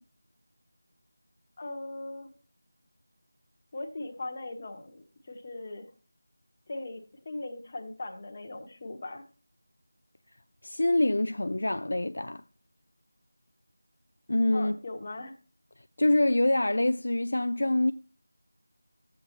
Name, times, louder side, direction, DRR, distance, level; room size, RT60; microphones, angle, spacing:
voice 1, 1.6-2.3 3.7-5.9 6.7-9.2 14.5-15.4, left 2 dB, 30° left, 1.1 m, -39 dB
voice 2, 10.6-12.4 14.3-14.8 16.0-17.9, left 1 dB, 70° left, 0.3 m, -25 dB
12.0 x 7.7 x 2.8 m
figure-of-eight pair, 170°, 0 cm